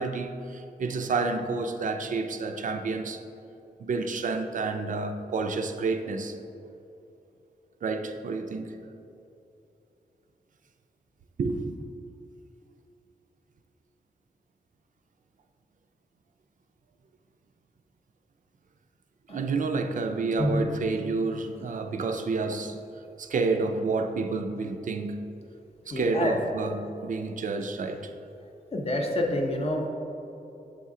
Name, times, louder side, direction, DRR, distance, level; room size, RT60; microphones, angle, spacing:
voice 1, 0.0-3.2 3.8-6.4 7.8-8.9 11.4-11.8 19.3-22.8 23.2-25.2 25.9-28.1, right 3 dB, 60° right, 6 dB, 0.4 m, -29 dB
voice 2, 25.9-26.3 28.7-29.9, left 1 dB, 40° left, 1 dB, 0.7 m, -27 dB
6.5 x 4.3 x 3.6 m, 2.8 s
wide cardioid pair, 170°, 15 cm